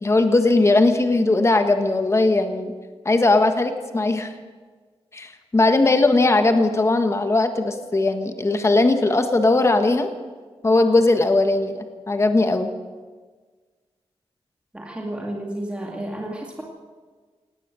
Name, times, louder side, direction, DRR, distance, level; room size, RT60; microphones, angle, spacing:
voice 1, 0.0-2.7 3.0-4.3 5.1-10.1 10.6-12.7, left 2 dB, 25° left, 7 dB, 1.4 m, -19 dB
voice 2, 14.7-16.6, right 1 dB, 10° right, -1 dB, 2.2 m, -31 dB
19.0 x 18.0 x 7.7 m, 1.5 s
wide cardioid pair, 165°, 11 cm